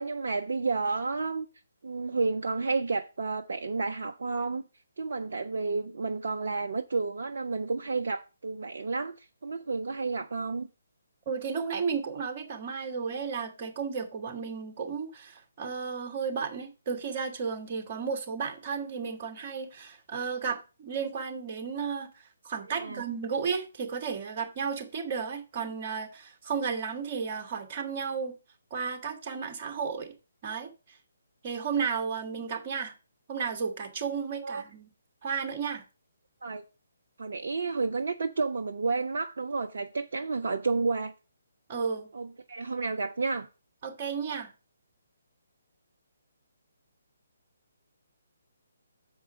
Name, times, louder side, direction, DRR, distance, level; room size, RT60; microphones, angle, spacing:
voice 1, 0.0-1.5 1.8-4.7 5.0-10.7 22.8-23.0 34.4-34.6 36.4-36.6 37.2-41.1 42.1-43.5, right 4 dB, 55° right, 0.5 m, -31 dB
voice 2, 11.2-28.3 28.7-30.1 30.4-31.0 31.4-32.9 33.3-34.9 35.2-35.8 41.7-42.1 43.8-44.5, right 6 dB, 30° right, 1.6 m, -33 dB
7.1 x 4.8 x 6.4 m
figure-of-eight pair, 140°, 0 cm